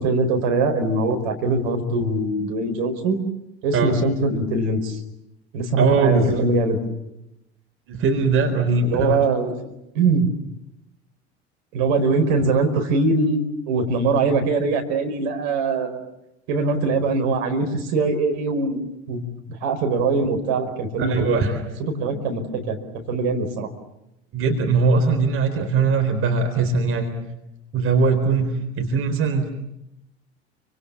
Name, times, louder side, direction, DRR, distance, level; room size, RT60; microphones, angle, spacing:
voice 1, 0.0-3.2 3.6-5.0 5.5-6.8 8.8-9.5 9.9-10.2 11.7-16.0 16.5-19.2 19.5-21.4 21.8-22.8 23.1-23.7, right 3 dB, 55° right, 4 dB, 5.0 m, -22 dB
voice 2, 5.8-6.4 7.9-9.2 21.0-21.6 22.1-22.2 24.3-27.1 27.7-29.5, right 4 dB, 40° right, 5 dB, 4.1 m, -20 dB
29.5 x 25.5 x 7.2 m, 0.86 s
figure-of-eight pair, 70°, 33 cm